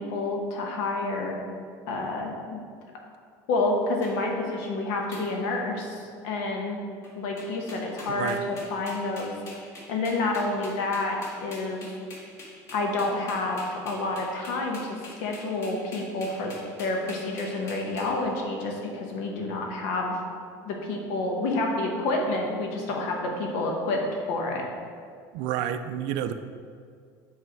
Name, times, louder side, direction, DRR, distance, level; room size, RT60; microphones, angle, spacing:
voice 1, 0.0-1.4 1.9-2.6 3.5-6.8 7.2-9.3 9.9-11.9 12.7-20.2 20.6-24.0 24.3-24.6, left 2 dB, 75° left, 1 dB, 1.1 m, -29 dB
sound 1, 4.0-4.1 5.1-5.2 5.8-6.1 7.0-7.1 7.4-18.0, left 2 dB, 35° left, 1.6 m, -44 dB
voice 2, 8.1-8.4 25.3-26.3, right 10 dB, 65° right, 10 dB, 0.4 m, -29 dB
7.6 x 3.4 x 4.5 m, 2.2 s
cardioid pair, 155°, 8 cm